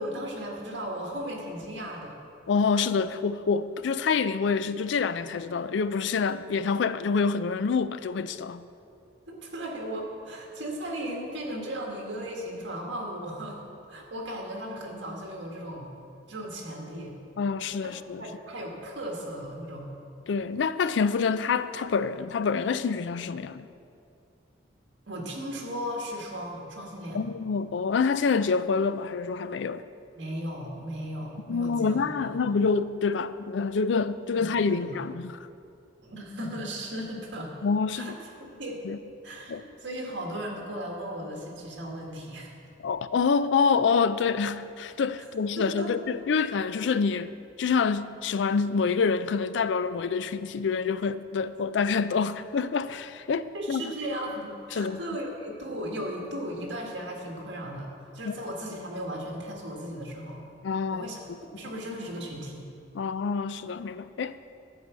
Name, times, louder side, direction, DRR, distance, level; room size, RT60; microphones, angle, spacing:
voice 1, 0.0-2.2 9.3-13.6 13.9-15.9 16.3-17.1 17.8-17.9 18.2-19.9 25.1-27.2 30.1-32.4 34.4-35.0 36.0-37.5 37.9-38.1 38.4-38.8 39.2-42.5 45.6-45.9 53.5-60.4 60.9-62.7, equal, 70° right, 1.8 m, -36 dB
voice 2, 2.5-8.6 17.4-18.2 20.3-23.7 27.1-29.8 31.5-35.4 37.6-38.1 38.8-39.0 39.5-39.6 42.8-47.3 47.6-53.9 54.7-55.0 58.3-58.4 60.6-61.1 62.9-64.4, left 5 dB, 70° left, 0.4 m, -27 dB
11.0 x 4.8 x 8.1 m
head